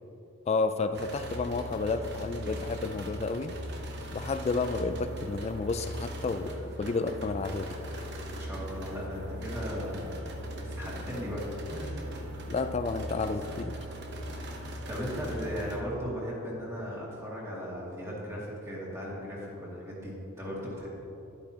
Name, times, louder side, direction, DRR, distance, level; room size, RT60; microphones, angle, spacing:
voice 1, 0.5-3.5 4.1-7.7 12.5-13.8, left 3 dB, 30° left, 9 dB, 0.3 m, -31 dB
sound 1, 0.9-15.8, equal, 55° right, 0.9 m, -39 dB
voice 2, 8.2-11.9 14.4-20.9, equal, 15° right, -5 dB, 2.2 m, -37 dB
12.0 x 11.0 x 2.9 m, 2.9 s
head